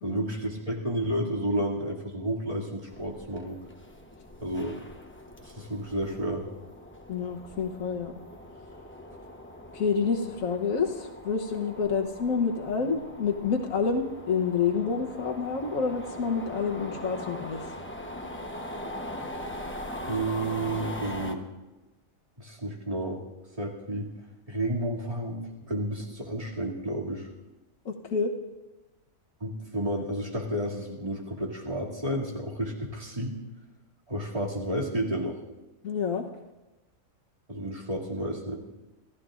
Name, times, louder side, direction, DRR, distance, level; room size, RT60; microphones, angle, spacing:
voice 1, 0.0-3.6 4.4-4.8 5.4-6.4 20.1-21.4 22.4-23.2 23.6-24.1 24.5-25.4 25.7-27.3 29.4-33.4 34.1-35.4 37.5-38.6, right 1 dB, 25° right, -3 dB, 2.5 m, -31 dB
sound 1, 2.9-21.3, left 1 dB, 10° left, 0.8 m, -41 dB
voice 2, 7.1-8.1 9.7-17.8 27.8-28.3 35.8-36.3, left 5 dB, 75° left, 3 dB, 1.5 m, -28 dB
27.0 x 14.5 x 2.5 m, 1.1 s
omnidirectional pair, 1.4 m